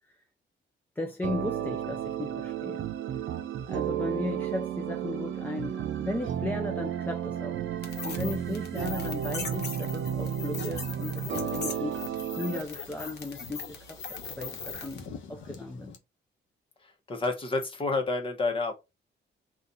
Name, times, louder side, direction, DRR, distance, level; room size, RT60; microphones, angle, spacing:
voice 1, 1.0-2.9 3.7-7.7 8.0-14.0 14.4-16.0, left 2 dB, 10° left, 0.4 m, -36 dB
sound 1, 1.2-12.6, right 10 dB, 80° right, 0.6 m, -33 dB
sound 2, 7.8-15.1, left 5 dB, 60° left, 1.0 m, -40 dB
sound 3, 11.3-16.0, left 6 dB, 90° left, 1.0 m, -49 dB
voice 2, 16.8-18.7, left 3 dB, 25° left, 0.9 m, -29 dB
4.1 x 2.4 x 4.0 m
wide cardioid pair, 165°, 20 cm